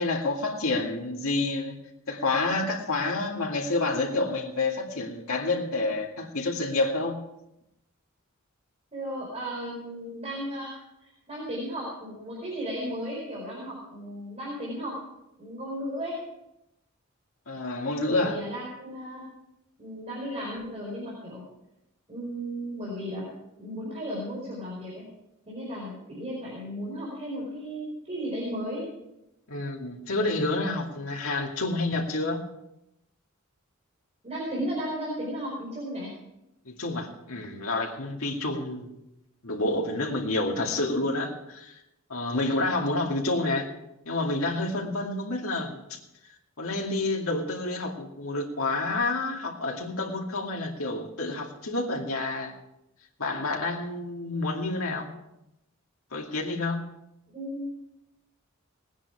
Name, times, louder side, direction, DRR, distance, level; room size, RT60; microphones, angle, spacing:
voice 1, 0.0-1.8 2.1-7.2 17.5-18.4 29.5-32.4 36.6-38.9 39.4-41.8 42.1-43.7 44.1-46.0 46.6-52.5 53.2-55.1 56.1-56.8, left 2 dB, 85° left, 0 dB, 2.4 m, -29 dB
voice 2, 8.9-14.9 15.4-16.2 18.1-19.3 19.8-21.4 22.1-23.3 23.6-25.0 25.5-28.8 34.2-36.1 57.3-57.7, equal, 30° right, -4 dB, 4.8 m, -35 dB
19.5 x 10.0 x 4.8 m, 0.87 s
head